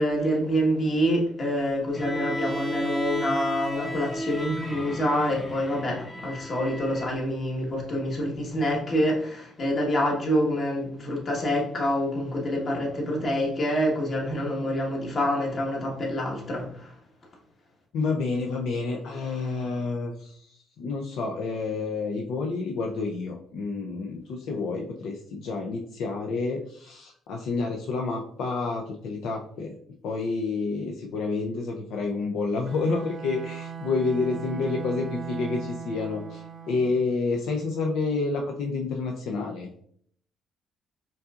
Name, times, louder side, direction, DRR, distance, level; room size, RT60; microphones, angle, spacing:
voice 1, 0.0-16.9, equal, 40° left, -1 dB, 1.3 m, -26 dB
Bowed string instrument, 1.9-7.2, right 1 dB, 20° left, 1.4 m, -34 dB
voice 2, 17.9-29.8 30.0-39.7, left 4 dB, 75° left, 1 dB, 0.5 m, -29 dB
Bowed string instrument 2, 32.7-37.0, right 7 dB, 45° right, 0.4 m, -38 dB
5.3 x 2.7 x 2.4 m, 0.62 s
cardioid pair, 110°, 0 cm